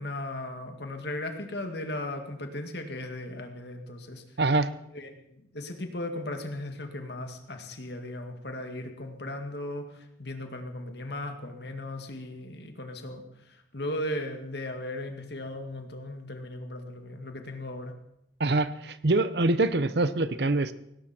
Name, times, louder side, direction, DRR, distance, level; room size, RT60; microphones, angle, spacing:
voice 1, 0.0-4.2 4.9-13.2 13.7-17.9, left 1 dB, 60° left, 5 dB, 2.2 m, -37 dB
voice 2, 4.4-4.7 18.4-20.7, right 2 dB, 60° right, 14 dB, 0.8 m, -24 dB
18.0 x 17.5 x 4.5 m, 0.79 s
head